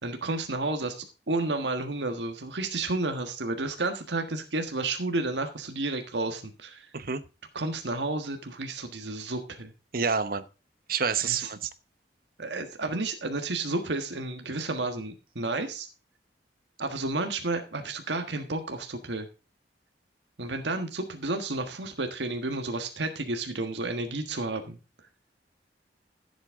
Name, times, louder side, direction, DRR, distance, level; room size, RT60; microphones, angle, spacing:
voice 1, 0.0-6.9 7.5-9.7 11.2-11.5 12.4-15.9 16.8-19.3 20.4-24.8, right 2 dB, 85° right, 1.5 m, -31 dB
voice 2, 9.9-10.4 10.9-11.7, right 5 dB, 55° right, 1.0 m, -28 dB
14.0 x 8.1 x 3.7 m
head